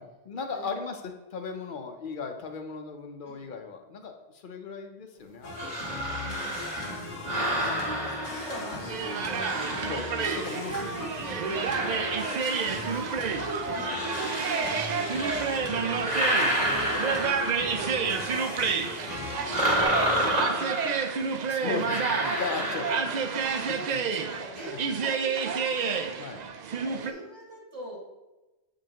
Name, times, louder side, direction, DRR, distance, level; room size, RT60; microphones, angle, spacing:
voice 1, 0.0-5.7 7.6-7.9 9.8-11.1 11.5-11.7 12.7-13.1 16.4-16.6 21.4-23.1 23.9-24.0 24.6-24.8 26.2-26.4, left 5 dB, 50° left, 5 dB, 0.8 m, -37 dB
sound 1, 5.4-19.8, left 2 dB, 85° left, 1.4 m, -38 dB
sound 2, 5.5-8.9 9.3-10.9 11.5-13.1 13.7-15.6 15.9-17.8 19.5-21.1 21.8-23.4, right 1 dB, 25° right, 1.8 m, -31 dB
voice 2, 6.0-9.9 10.7-12.2 12.8-16.1 16.6-21.5 22.6-26.1 26.7-28.0, right 1 dB, 80° right, -3 dB, 2.1 m, -43 dB
sound 3, 8.9-27.1, right 6 dB, 65° right, 0.4 m, -30 dB
7.5 x 5.2 x 2.9 m, 1.1 s
omnidirectional pair, 1.2 m